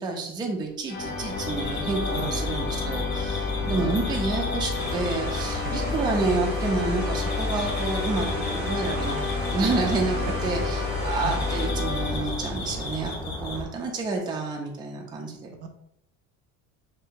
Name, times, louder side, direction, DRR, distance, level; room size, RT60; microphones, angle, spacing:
voice 1, 0.0-9.2 9.5-15.5, right 3 dB, 15° right, 0 dB, 0.4 m, -29 dB
sound 1, 0.9-12.8, left 4 dB, 40° left, 0.6 m, -30 dB
sound 2, 1.0-13.6, left 1 dB, 60° left, 1.2 m, -34 dB
voice 2, 3.6-4.3 5.6-5.9 10.4-10.5 11.2-11.4 15.6-15.7, right 5 dB, 70° right, 6 dB, 0.6 m, -36 dB
sound 3, 4.7-11.7, right 2 dB, 35° right, 0.8 m, -37 dB
2.7 x 2.1 x 3.7 m, 0.79 s
cardioid pair, 145°, 31 cm